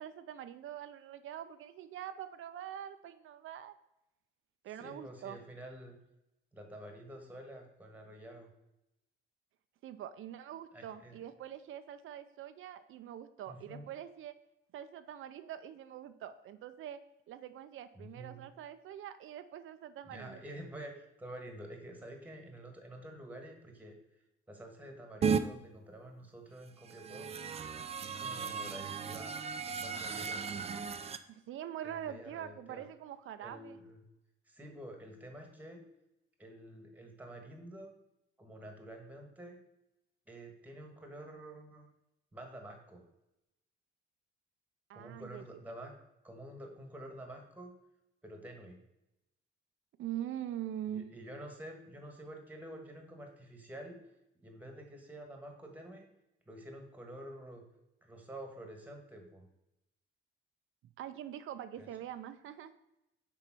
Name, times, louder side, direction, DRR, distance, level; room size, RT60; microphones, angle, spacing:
voice 1, 0.0-3.7 4.6-5.4 9.8-14.3 14.7-17.0 17.3-20.4 31.3-33.8 44.9-45.4 50.0-51.1 61.0-62.7, right 10 dB, 85° right, 10 dB, 0.5 m, -44 dB
voice 2, 4.8-6.0 6.5-8.5 10.7-11.2 13.5-13.9 17.9-18.5 20.0-24.0 24.5-27.3 28.0-29.4 29.6-30.5 31.8-32.8 33.4-34.0 34.5-35.8 36.4-37.9 38.4-39.6 40.3-41.9 42.3-43.0 44.9-45.9 46.2-47.7 48.2-48.8 50.9-54.0 54.4-56.0 56.5-57.6 58.0-59.4 61.8-61.9, right 1 dB, 10° right, 3 dB, 1.4 m, -48 dB
sound 1, 25.2-25.4 26.8-31.2, right 6 dB, 30° right, 0.4 m, -35 dB
6.8 x 4.5 x 6.0 m, 0.87 s
wide cardioid pair, 165°, 20 cm